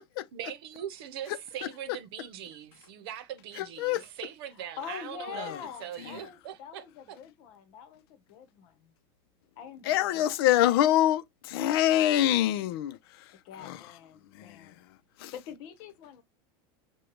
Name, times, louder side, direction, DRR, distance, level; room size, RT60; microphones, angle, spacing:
voice 1, 0.3-5.5 5.8-6.8, right 10 dB, 75° right, 0.8 m, -41 dB
voice 2, 3.6-4.0 9.9-13.3 13.6-13.8 14.3-14.7 15.2-15.3, left 13 dB, 70° left, 0.6 m, -25 dB
voice 3, 4.5-8.9 9.6-10.4 13.4-14.8 15.3-16.2, left 7 dB, 45° left, 1.0 m, -44 dB
6.3 x 2.3 x 3.0 m
supercardioid pair, 165°, 13 cm